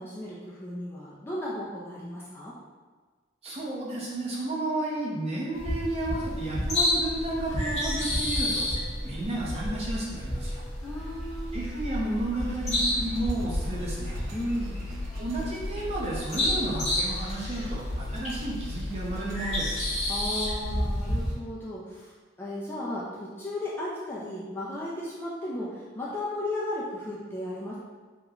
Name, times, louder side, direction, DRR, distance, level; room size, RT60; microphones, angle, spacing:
voice 1, 0.0-2.5 10.8-11.6 14.3-14.9 20.1-27.8, left 1 dB, 10° left, -7 dB, 0.4 m, -35 dB
voice 2, 3.4-8.7 9.0-10.6 11.5-14.2 15.2-19.8, right 1 dB, 30° right, -5 dB, 0.6 m, -32 dB
sound 1, 5.5-21.3, left 1 dB, 35° left, 0.8 m, -31 dB
sound 2, 12.4-20.0, left 3 dB, 80° right, 0.4 m, -39 dB
2.9 x 2.1 x 3.6 m, 1.4 s
head